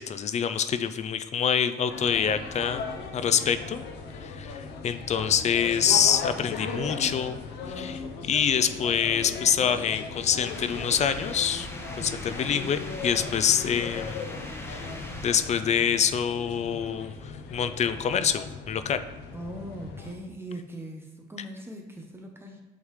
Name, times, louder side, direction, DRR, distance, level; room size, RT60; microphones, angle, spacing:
voice 1, 0.0-2.8 3.1-3.8 4.2-7.4 7.7-11.7 12.0-14.2 14.7-14.9 15.2-19.0, left 8 dB, 45° left, 11 dB, 0.4 m, -26 dB
sound 1, 1.9-20.1, left 4 dB, 85° left, 0.7 m, -38 dB
sound 2, 10.4-15.4, left 1 dB, 15° left, 1.1 m, -40 dB
voice 2, 19.3-22.6, right 1 dB, 15° right, 1 dB, 0.8 m, -40 dB
8.3 x 3.6 x 3.2 m, 1.1 s
cardioid pair, 95°, 17 cm